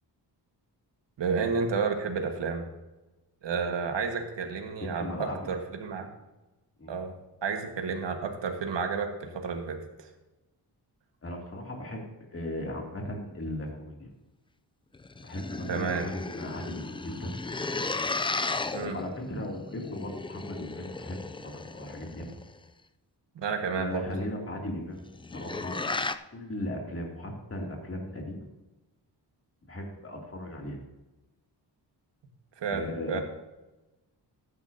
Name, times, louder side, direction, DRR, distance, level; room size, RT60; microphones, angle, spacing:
voice 1, 1.2-2.6 3.4-6.1 6.9-7.1 7.4-10.1 15.7-16.0 18.7-19.0 23.3-24.1 32.6-32.8 33.1-33.2, right 5 dB, 85° right, 4 dB, 1.6 m, -31 dB
voice 2, 4.8-5.5 6.8-7.0 11.2-14.1 15.2-17.4 18.8-22.4 23.8-26.0 26.3-28.5 29.7-30.8 32.7-33.2, left 1 dB, 30° left, 0 dB, 2.7 m, -37 dB
sound 1, 14.9-22.6 25.0-26.1, left 3 dB, 15° left, 0.3 m, -35 dB
14.0 x 10.0 x 2.8 m, 1.1 s
wide cardioid pair, 115°, 43 cm